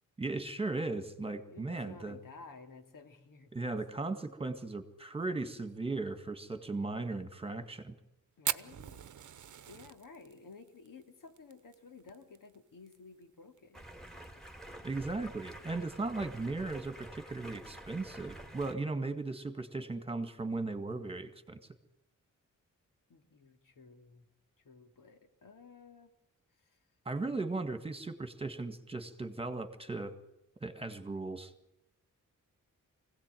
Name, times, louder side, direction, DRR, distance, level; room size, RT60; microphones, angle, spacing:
voice 1, 0.2-2.2 3.5-7.9 14.8-21.6 27.1-30.1 30.6-31.5, right 3 dB, 15° right, 9 dB, 1.9 m, -37 dB
voice 2, 1.5-3.5 8.4-9.0 9.7-13.9 23.1-24.3 24.6-26.1 26.5-26.9, left 4 dB, 85° left, 6 dB, 2.6 m, -54 dB
Fire, 8.4-13.0 13.2-13.3 13.6-13.7 14.0-14.5 15.0-15.1 16.1-16.3, right 9 dB, 65° right, 0.9 m, -39 dB
Stream, 13.7-18.8, right 1 dB, ahead, 2.3 m, -49 dB
24.5 x 17.0 x 9.2 m, 0.86 s
wide cardioid pair, 135°, 32 cm